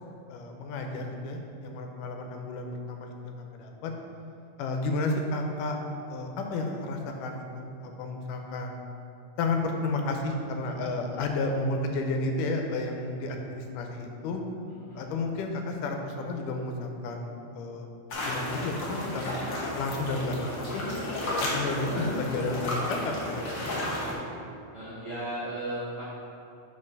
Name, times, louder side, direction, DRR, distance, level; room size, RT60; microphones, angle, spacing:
voice 1, 0.3-3.9 4.6-5.8 6.1-8.8 9.4-14.4 14.9-17.9 18.2-19.4 19.8-20.9 21.4-23.3, left 2 dB, 90° left, 3 dB, 2.3 m, -32 dB
voice 2, 14.7-15.0 23.5-23.9 24.7-26.0, right 1 dB, 65° right, -10 dB, 0.7 m, -37 dB
sound 1, 18.1-24.1, left 1 dB, 60° left, 1.3 m, -32 dB
5.5 x 5.3 x 5.3 m, 2.7 s
omnidirectional pair, 3.6 m